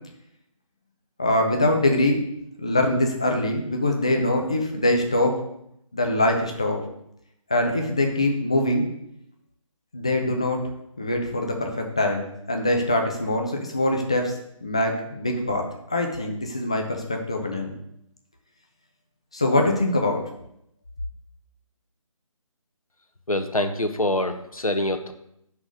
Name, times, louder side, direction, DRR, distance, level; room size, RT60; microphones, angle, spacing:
voice 1, 1.2-2.2 2.6-5.4 5.9-6.8 7.5-8.9 9.9-10.6 11.0-17.7 19.3-20.2, left 1 dB, 10° left, 2 dB, 0.4 m, -23 dB
voice 2, 23.3-25.1, left 1 dB, 85° left, 8 dB, 1.1 m, -25 dB
7.8 x 6.2 x 5.2 m, 0.77 s
figure-of-eight pair, 150°, 18 cm